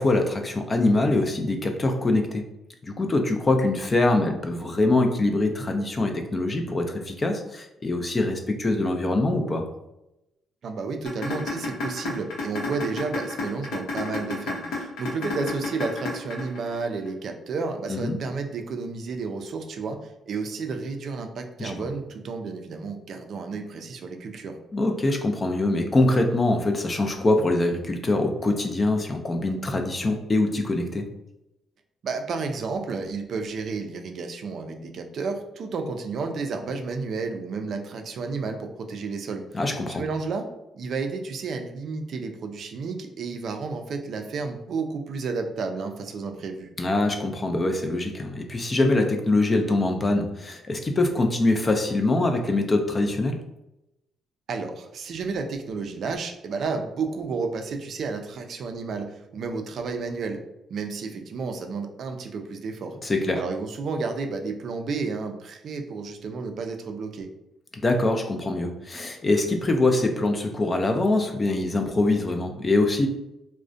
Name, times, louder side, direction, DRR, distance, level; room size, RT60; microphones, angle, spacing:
voice 1, 0.0-2.4 2.8-9.7 17.9-18.2 21.6-21.9 24.7-31.1 39.5-40.0 46.8-53.4 63.0-63.4 67.7-73.1, left 2 dB, 30° left, 4 dB, 0.4 m, -24 dB
voice 2, 10.6-24.5 32.0-39.4 39.9-40.5 40.7-46.7 54.5-60.4 60.7-62.9 63.3-67.3, right 4 dB, 60° right, 5 dB, 0.3 m, -31 dB
sound 1, 11.1-17.1, left 3 dB, 85° left, 0.7 m, -31 dB
2.4 x 2.1 x 2.5 m, 0.89 s
cardioid pair, 90°, 0 cm